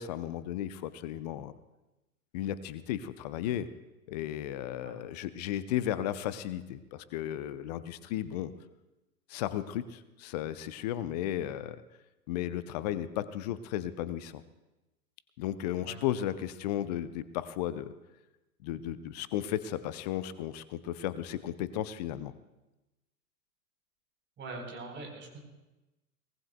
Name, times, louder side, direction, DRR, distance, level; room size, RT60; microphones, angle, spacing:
voice 1, 0.0-1.5 2.3-3.7 4.1-8.5 9.3-11.8 12.3-14.4 15.4-17.9 18.6-22.3, left 12 dB, 25° left, 15 dB, 0.5 m, -34 dB
voice 2, 24.4-25.4, right 3 dB, 25° right, 1 dB, 3.9 m, -42 dB
23.0 x 19.0 x 2.3 m, 1.0 s
figure-of-eight pair, 100°, 47 cm